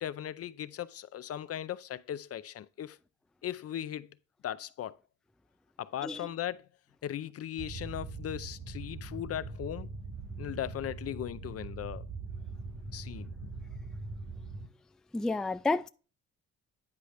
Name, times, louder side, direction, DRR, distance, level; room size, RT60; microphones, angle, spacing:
voice 1, 0.0-3.0 3.4-4.2 4.4-5.0 5.8-6.7 7.0-9.9 10.4-12.0 12.9-13.3, left 11 dB, 50° left, 0.5 m, -38 dB
sound 1, 7.6-14.7, right 3 dB, 45° right, 1.7 m, -42 dB
voice 2, 15.1-15.9, left 3 dB, ahead, 0.3 m, -30 dB
9.7 x 4.9 x 3.2 m
cardioid pair, 90°, 30 cm